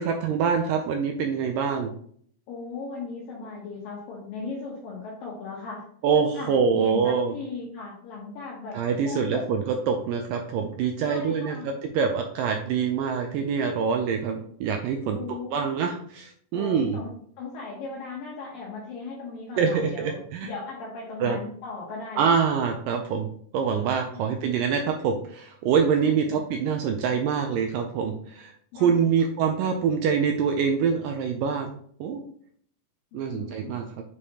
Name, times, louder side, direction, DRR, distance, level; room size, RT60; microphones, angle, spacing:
voice 1, 0.0-1.9 6.0-7.3 8.7-15.2 15.5-17.0 19.6-20.5 21.2-21.4 22.2-23.3 23.5-31.7 32.0-32.2 33.1-33.8, right 6 dB, 85° right, 4 dB, 1.9 m, -25 dB
voice 2, 2.5-5.8 6.3-9.5 11.0-11.7 14.2-14.3 15.0-15.7 16.5-17.1 17.4-22.4 24.1-24.4 26.0-26.4 28.7-29.3 33.1-33.8, left 3 dB, 70° left, -3 dB, 2.6 m, -38 dB
7.1 x 4.9 x 2.9 m, 0.62 s
omnidirectional pair, 4.4 m